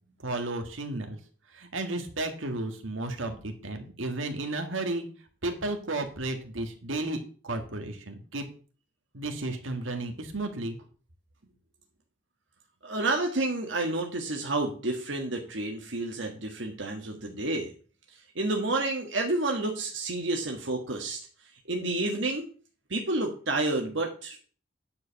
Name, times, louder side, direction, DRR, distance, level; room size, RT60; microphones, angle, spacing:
voice 1, 0.2-1.2 1.5-5.0 5.4-8.4 9.1-10.8, right 2 dB, 90° right, 5 dB, 1.8 m, -33 dB
voice 2, 12.8-17.7 18.3-21.2 21.7-22.5 22.9-24.4, right 2 dB, 75° right, 1 dB, 1.5 m, -30 dB
9.6 x 5.0 x 7.0 m, 0.39 s
head